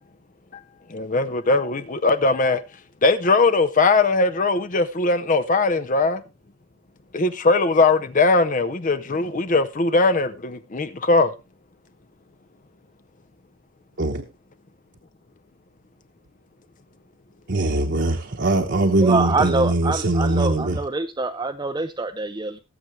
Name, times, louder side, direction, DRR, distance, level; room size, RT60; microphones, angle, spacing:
voice 1, 0.9-2.6 3.0-6.2 7.1-11.3, left 3 dB, 40° left, 0.6 m, -20 dB
voice 2, 17.5-20.8, right 2 dB, 55° right, 1.2 m, -21 dB
voice 3, 19.0-22.6, right 3 dB, 20° right, 0.5 m, -25 dB
18.5 x 7.7 x 3.2 m
head